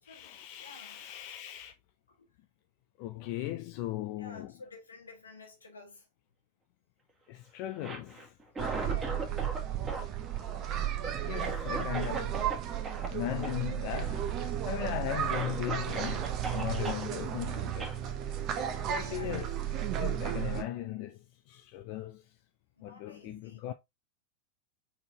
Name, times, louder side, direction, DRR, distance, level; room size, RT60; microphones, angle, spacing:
voice 1, 0.0-1.7 3.0-4.5 7.3-8.3 9.3-9.4 11.2-12.8 13.1-14.3 14.7-17.9 18.8-19.6 19.9-22.2 22.8-23.7, left 13 dB, 45° left, 0.4 m, -38 dB
voice 2, 0.6-1.0 2.1-2.3 4.2-6.1 8.7-9.2 19.0-19.5 22.8-23.7, left 3 dB, 75° left, 1.4 m, -51 dB
Cough, 7.7-9.6 9.9-12.6 12.8-13.1 13.4-13.6 13.9-14.4 14.9-15.0 15.3-17.0 17.8-18.0, right 2 dB, 15° right, 1.5 m, -39 dB
sound 1, 8.6-20.6, right 10 dB, 35° right, 0.8 m, -34 dB
4.2 x 4.0 x 2.8 m
figure-of-eight pair, 90°, 0 cm